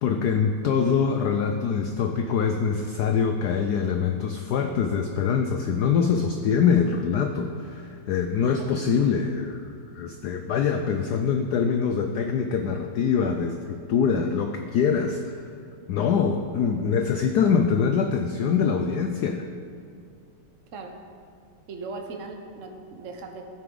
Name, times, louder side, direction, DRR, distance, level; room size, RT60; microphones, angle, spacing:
voice 1, 0.0-15.4 15.9-19.5, left 6 dB, 80° left, 5 dB, 0.9 m, -24 dB
voice 2, 21.7-23.5, right 3 dB, 50° right, 3 dB, 1.0 m, -38 dB
13.5 x 9.2 x 3.9 m, 2.2 s
omnidirectional pair, 2.3 m